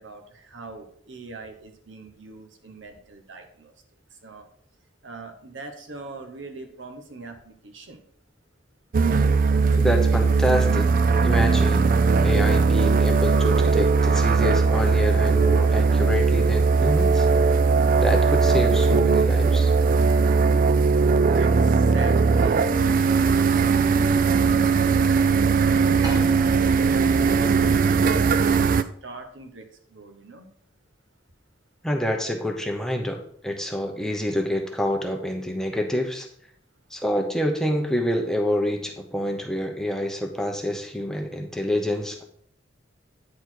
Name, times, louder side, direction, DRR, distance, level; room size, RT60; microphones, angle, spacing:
voice 1, 0.0-3.7 4.2-4.4 5.0-8.0 21.3-28.5 29.0-30.5, right 3 dB, 75° right, 6 dB, 1.1 m, -41 dB
sound 1, 8.9-28.8, right 4 dB, 45° right, 0.4 m, -19 dB
voice 2, 9.8-10.9 11.2-11.9 12.2-17.3 18.0-19.7 31.8-36.3 36.9-42.2, equal, 5° left, 2 dB, 0.8 m, -27 dB
sound 2, 20.0-20.4 20.8-20.9 22.2-22.3 22.9-25.1 25.4-25.5 25.8-28.2, right 1 dB, 20° right, 1.1 m, -41 dB
9.5 x 4.3 x 4.5 m, 0.64 s
head